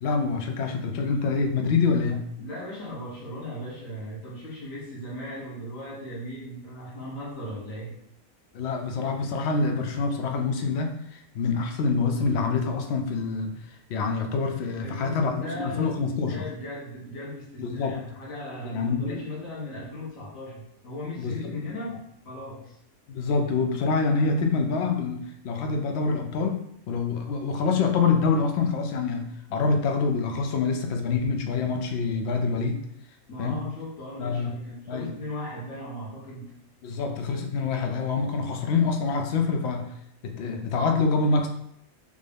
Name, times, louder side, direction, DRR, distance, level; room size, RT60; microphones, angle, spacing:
voice 1, 0.0-2.3 8.5-13.5 13.9-16.5 17.6-18.0 18.6-19.2 21.2-21.3 23.1-32.8 33.4-33.6 34.2-34.5 34.9-35.1 36.8-39.9 40.2-41.5, left 4 dB, 65° left, 4 dB, 0.8 m, -26 dB
voice 2, 2.4-7.9 14.8-22.0 22.2-22.8 33.3-36.6, left 1 dB, 90° left, -5 dB, 1.5 m, -37 dB
3.5 x 2.6 x 3.3 m, 0.75 s
omnidirectional pair, 1.3 m